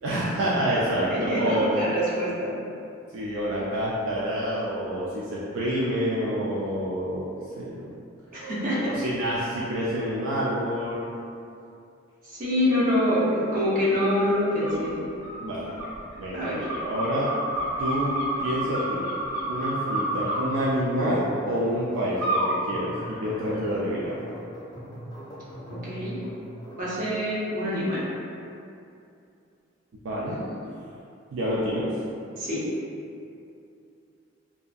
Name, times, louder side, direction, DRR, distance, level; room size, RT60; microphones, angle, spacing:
voice 1, 0.0-1.8 3.1-7.3 7.6-7.8 8.8-11.1 15.4-15.7 16.1-17.3 17.8-19.1 19.4-24.2 30.0-30.4 31.3-32.0, equal, 75° right, -7 dB, 0.4 m, -28 dB
voice 2, 1.1-2.5 8.3-8.9 12.2-15.0 16.3-16.6 25.7-26.2 26.8-28.0 32.4-32.6, left 1 dB, 45° right, -8 dB, 0.7 m, -25 dB
sound 1, 14.6-14.8 15.2-20.4 22.2-22.5 23.0-23.7, right 1 dB, 15° right, 0.6 m, -30 dB
sound 2, 19.4-27.0, equal, 20° left, 0.6 m, -42 dB
2.7 x 2.5 x 2.3 m, 2.6 s
head